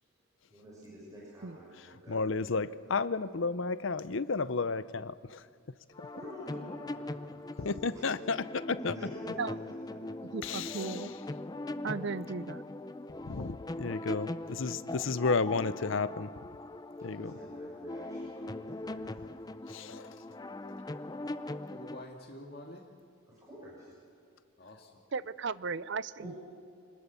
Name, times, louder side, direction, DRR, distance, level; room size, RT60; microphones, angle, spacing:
voice 1, 0.5-2.3 6.1-8.0 8.8-10.0 10.3-10.5 17.0-19.8 23.3-23.9 26.2-26.4, equal, 15° right, 5.9 m, -49 dB
voice 2, 2.1-5.4 7.6-8.9 10.4-11.1 13.2-16.3 17.0-17.3 19.7-20.1, left 4 dB, 65° left, 0.7 m, -32 dB
sound 1, 5.9-22.0, left 2 dB, 20° left, 0.5 m, -41 dB
voice 3, 10.3-11.1 11.8-12.6 25.1-26.3, right 4 dB, 55° right, 0.5 m, -36 dB
voice 4, 21.7-22.9 24.6-25.0, left 1 dB, 45° left, 2.0 m, -47 dB
25.5 x 20.0 x 6.9 m
head